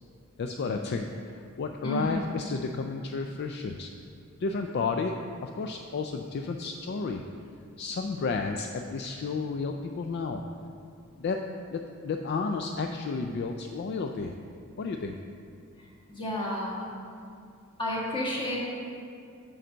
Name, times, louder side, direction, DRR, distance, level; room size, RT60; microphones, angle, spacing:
voice 1, 0.4-3.9 4.4-7.2 7.8-10.4 11.2-11.4 11.7-14.3 14.8-15.2, left 4 dB, 50° left, 4 dB, 0.3 m, -32 dB
voice 2, 1.8-2.2 15.8-16.7 17.8-18.6, left 1 dB, 20° left, -4 dB, 1.5 m, -32 dB
8.7 x 3.9 x 6.3 m, 2.5 s
head